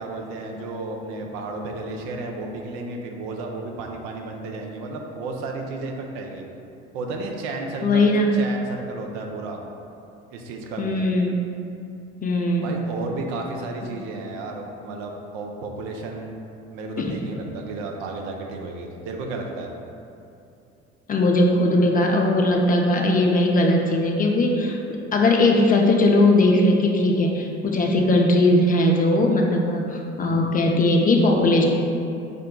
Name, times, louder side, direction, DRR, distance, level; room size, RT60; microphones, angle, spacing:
voice 1, 0.0-6.4 6.9-9.6 10.3-11.0 12.6-16.3 16.7-19.7 30.2-30.5, right 3 dB, 65° right, 1 dB, 0.6 m, -33 dB
voice 2, 7.8-8.3 10.8-11.4 12.2-12.7 21.1-31.6, left 1 dB, 25° left, 0 dB, 0.5 m, -19 dB
5.1 x 2.2 x 3.7 m, 2.6 s
figure-of-eight pair, 55°, 34 cm